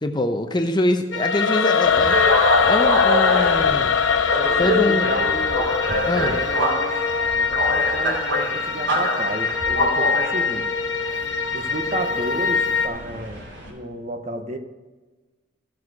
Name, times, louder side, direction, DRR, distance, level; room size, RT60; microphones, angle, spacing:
voice 1, 0.0-4.0 4.6-5.1 6.0-6.4, left 1 dB, 20° left, 7 dB, 0.6 m, -24 dB
sound 1, 1.1-12.9, left 5 dB, 65° left, 1.0 m, -25 dB
Singing / Musical instrument, 1.2-8.3, left 7 dB, 80° left, 0.4 m, -22 dB
sound 2, 1.8-13.7, equal, 65° right, 3.1 m, -26 dB
voice 2, 4.4-5.7 6.1-6.9 7.4-10.7 11.5-13.4 13.7-14.6, right 1 dB, 35° right, 6 dB, 0.8 m, -32 dB
14.0 x 6.3 x 4.8 m, 1.3 s
head